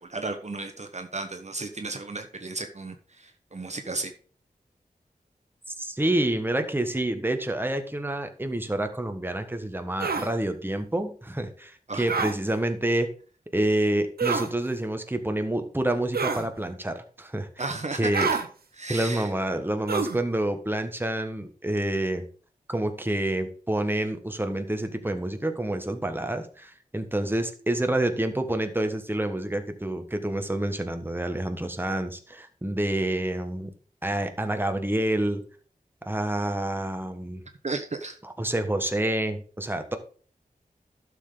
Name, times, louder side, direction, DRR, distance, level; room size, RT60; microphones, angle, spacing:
voice 1, 0.0-4.1 11.9-12.1 17.6-18.1 18.8-19.3 37.6-38.2, right 3 dB, 50° right, 6 dB, 1.2 m, -34 dB
voice 2, 5.8-13.1 13.5-17.5 17.9-18.3 18.9-22.2 22.7-33.7 34.0-35.4 36.0-37.4 38.2-40.0, right 1 dB, 15° right, 7 dB, 1.4 m, -28 dB
sound 1, 10.0-10.3 12.1-12.3 14.2-14.5 16.1-16.5 18.1-18.5 19.9-20.2, right 5 dB, 90° right, 0.9 m, -27 dB
11.5 x 6.9 x 3.9 m, 0.42 s
cardioid pair, 50°, 15 cm